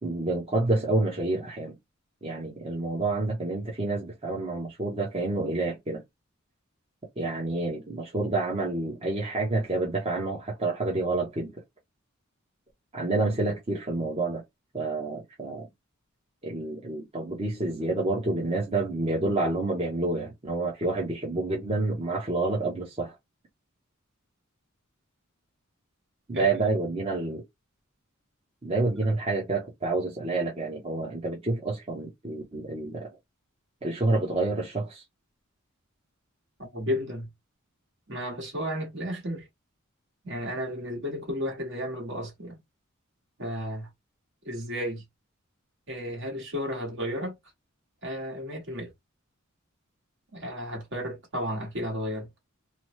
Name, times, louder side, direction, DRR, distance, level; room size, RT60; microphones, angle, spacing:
voice 1, 0.0-1.8 2.2-6.0 7.2-11.5 12.9-14.4 14.7-15.7 16.4-23.1 26.3-27.4 28.6-33.1 33.8-35.0, right 2 dB, 30° right, 0.8 m, -28 dB
voice 2, 26.3-26.7 36.7-37.3 38.1-39.5 40.2-42.6 43.4-43.9 44.4-45.0 45.9-47.3 48.0-48.9 50.3-52.3, equal, 55° right, 1.4 m, -33 dB
2.9 x 2.0 x 3.1 m
head